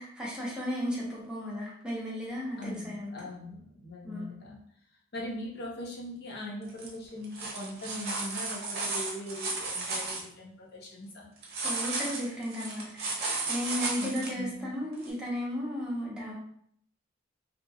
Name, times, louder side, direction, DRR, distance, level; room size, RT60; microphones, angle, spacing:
voice 1, 0.0-3.1 4.0-4.3 11.6-13.1 13.5-16.3, equal, 5° right, -6 dB, 0.8 m, -34 dB
voice 2, 2.6-4.6 5.1-11.3 14.0-14.1 14.4-14.7, left 1 dB, 55° left, -3 dB, 0.8 m, -40 dB
sound 1, 6.7-6.9 7.2-10.2 11.4-14.3 15.0-15.1, right 3 dB, 55° right, 0.7 m, -34 dB
2.9 x 2.6 x 2.3 m, 0.66 s
head